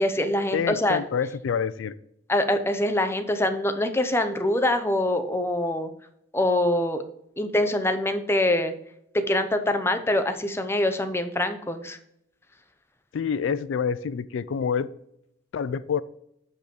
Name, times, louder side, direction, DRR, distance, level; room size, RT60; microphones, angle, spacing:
voice 1, 0.0-1.0 2.3-5.9 6.3-7.0 7.4-8.7 9.1-12.0, left 1 dB, 10° left, 8 dB, 0.6 m, -24 dB
voice 2, 0.5-1.9 13.1-14.9 15.5-16.0, left 6 dB, 70° left, 15 dB, 0.3 m, -27 dB
6.1 x 5.4 x 5.1 m, 0.78 s
head